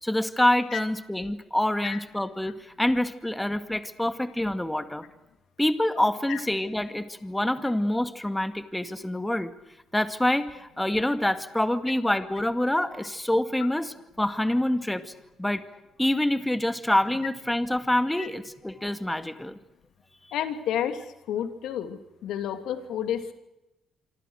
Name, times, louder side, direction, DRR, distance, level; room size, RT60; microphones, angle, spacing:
voice 1, 0.0-5.0 5.6-9.5 9.9-15.1 15.4-15.6 16.0-19.6, left 1 dB, 10° left, 9 dB, 2.1 m, -26 dB
voice 2, 20.3-21.0 21.3-23.3, left 10 dB, 85° left, 8 dB, 2.8 m, -30 dB
26.0 x 26.0 x 6.5 m, 0.95 s
cardioid pair, 90°, 0 cm